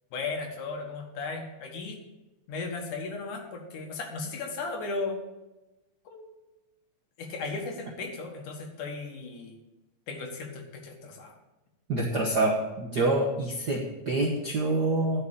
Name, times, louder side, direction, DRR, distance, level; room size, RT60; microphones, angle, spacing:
voice 1, 0.1-2.0 2.5-5.2 6.1-6.3 7.2-9.6 10.1-11.4, left 3 dB, 75° left, 2 dB, 3.0 m, -36 dB
voice 2, 11.9-15.2, right 2 dB, 55° right, -3 dB, 1.1 m, -26 dB
12.0 x 5.6 x 6.6 m, 1.0 s
omnidirectional pair, 3.6 m